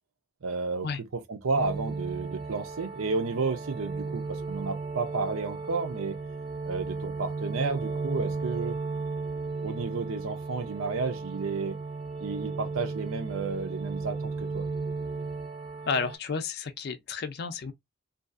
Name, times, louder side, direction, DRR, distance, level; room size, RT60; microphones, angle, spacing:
voice 1, 0.4-6.2 6.6-8.8 9.6-11.8 12.2-14.7, right 4 dB, 85° right, 0.6 m, -32 dB
sound 1, 1.5-16.2, right 4 dB, 25° right, 0.5 m, -35 dB
voice 2, 15.9-17.7, left 5 dB, 50° left, 0.4 m, -31 dB
2.6 x 2.4 x 2.4 m
head